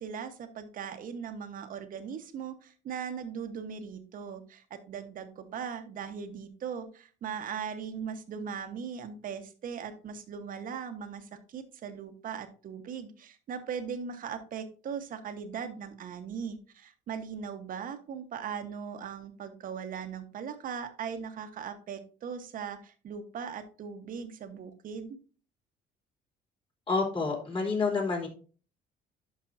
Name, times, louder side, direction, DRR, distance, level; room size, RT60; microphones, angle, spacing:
voice 1, 0.0-25.2, right 7 dB, 55° right, 8 dB, 1.2 m, -39 dB
voice 2, 26.9-28.3, left 4 dB, 30° left, 0 dB, 3.3 m, -28 dB
11.5 x 5.4 x 2.7 m, 0.37 s
cardioid pair, 110°, 17 cm